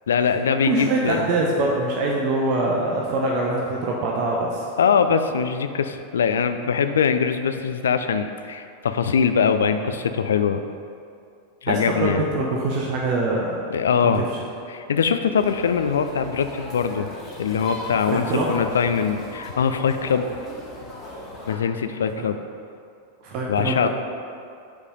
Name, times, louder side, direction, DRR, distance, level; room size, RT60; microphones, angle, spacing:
voice 1, 0.1-1.2 4.8-10.6 11.6-12.2 13.7-14.2 14.7-17.1 17.4-20.3 21.5-22.4 23.5-23.9, left 6 dB, 65° left, 9 dB, 0.3 m, -22 dB
voice 2, 0.6-4.7 11.7-13.6 14.0-14.2 18.1-18.5 22.1-22.2 23.2-23.9, right 2 dB, 45° right, -2 dB, 0.8 m, -24 dB
sound 1, 15.4-21.6, left 1 dB, 25° left, 1.5 m, -37 dB
5.3 x 4.8 x 5.3 m, 2.5 s
figure-of-eight pair, 90°, 0 cm